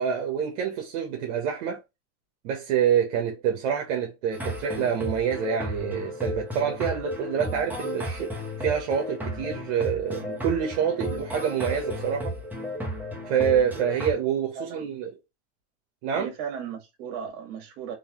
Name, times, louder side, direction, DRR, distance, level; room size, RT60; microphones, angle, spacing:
voice 1, 0.0-1.8 2.4-12.3 13.3-15.1 16.0-16.3, right 8 dB, 75° right, 1.0 m, -27 dB
sound 1, 4.3-14.1, equal, 5° right, 0.9 m, -33 dB
voice 2, 14.5-14.9 16.1-18.0, right 7 dB, 60° right, 1.7 m, -36 dB
3.8 x 2.8 x 2.9 m
supercardioid pair, 130°, 35 cm